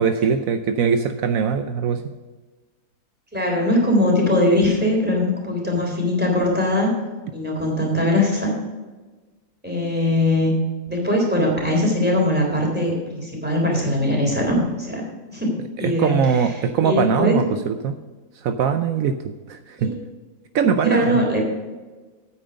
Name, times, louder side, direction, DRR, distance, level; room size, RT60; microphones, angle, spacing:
voice 1, 0.0-2.1 15.8-18.0 18.4-19.2 19.5-19.9 20.5-21.3, right 6 dB, 75° right, 8 dB, 1.1 m, -21 dB
voice 2, 3.3-6.9 7.3-8.5 9.6-10.5 10.9-15.5 15.8-16.2 16.8-17.4 19.8-20.0 20.8-21.5, left 1 dB, 5° right, -1 dB, 3.5 m, -21 dB
9.5 x 8.9 x 5.1 m, 1.3 s
omnidirectional pair, 1.5 m